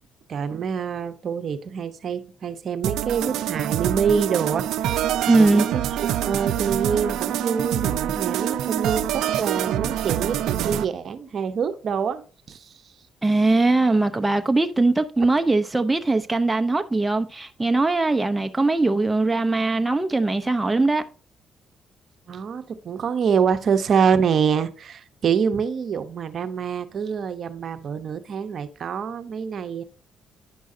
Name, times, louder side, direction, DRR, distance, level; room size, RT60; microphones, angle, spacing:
voice 1, 0.3-4.7 4.9-5.1 5.4-12.2 12.5-12.8 22.3-29.8, right 6 dB, 55° right, 0.8 m, -26 dB
sound 1, 2.8-10.8, right 11 dB, 85° right, 0.5 m, -25 dB
voice 2, 5.3-5.7 13.2-21.0, right 2 dB, 15° right, 0.7 m, -21 dB
10.5 x 6.2 x 2.7 m
cardioid pair, 90°, 0 cm